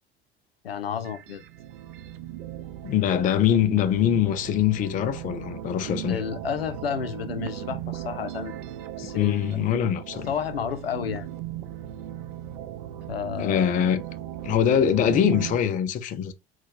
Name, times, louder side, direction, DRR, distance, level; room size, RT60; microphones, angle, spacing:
voice 1, 0.6-1.4 6.1-8.6 9.0-9.4 10.3-11.3 13.1-13.7, left 8 dB, 80° left, 0.5 m, -31 dB
sound 1, 0.9-15.6, right 12 dB, 60° right, 0.5 m, -37 dB
voice 2, 2.8-6.2 9.1-10.3 13.4-14.0 14.4-16.3, left 9 dB, 25° left, 0.4 m, -23 dB
4.0 x 2.2 x 3.8 m
figure-of-eight pair, 65°, 30 cm